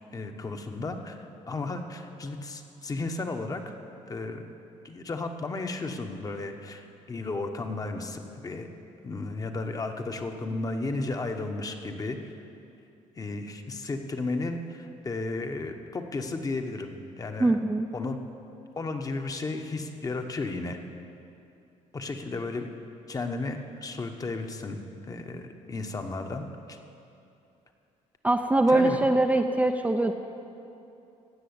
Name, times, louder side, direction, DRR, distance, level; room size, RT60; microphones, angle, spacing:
voice 1, 0.1-1.2 1.5-3.7 4.1-4.4 4.8-8.7 9.0-12.3 13.2-17.6 17.9-18.2 18.8-20.8 21.9-22.7 23.1-24.8 25.1-26.8 28.7-29.0, left 3 dB, 25° left, 5 dB, 1.0 m, -34 dB
voice 2, 17.4-17.9 28.2-30.1, right 2 dB, 10° right, 4 dB, 0.5 m, -22 dB
16.0 x 6.3 x 8.6 m, 2.8 s
cardioid pair, 120°, 13 cm